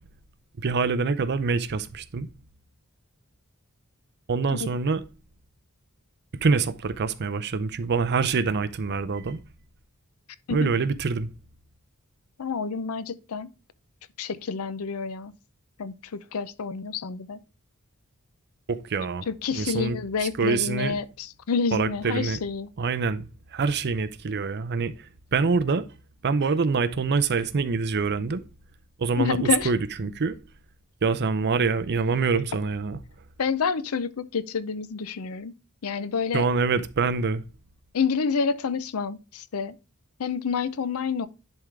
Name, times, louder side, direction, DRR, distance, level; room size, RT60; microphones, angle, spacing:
voice 1, 0.6-2.3 4.3-5.0 6.4-9.4 10.5-11.3 18.7-19.3 19.5-20.0 20.4-20.9 21.7-22.4 22.8-23.3 23.5-24.9 25.3-25.8 26.2-28.4 29.0-30.4 31.0-33.0 36.3-37.4, right 4 dB, 50° right, 0.6 m, -25 dB
voice 2, 12.4-13.5 14.2-15.3 15.8-17.4 19.3-22.7 29.2-29.7 33.4-35.5 35.8-36.5 37.9-39.7 40.2-41.3, left 5 dB, 70° left, 0.6 m, -28 dB
10.5 x 3.7 x 3.3 m
head